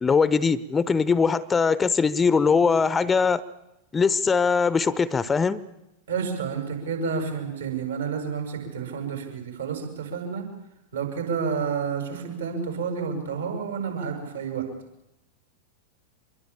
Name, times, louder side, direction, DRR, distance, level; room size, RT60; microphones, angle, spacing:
voice 1, 0.0-3.4 3.9-5.6, left 5 dB, 15° left, 0.9 m, -21 dB
voice 2, 6.1-10.5 10.9-14.7, right 6 dB, 65° right, 7.4 m, -30 dB
25.5 x 22.0 x 8.7 m
figure-of-eight pair, 90°, 0 cm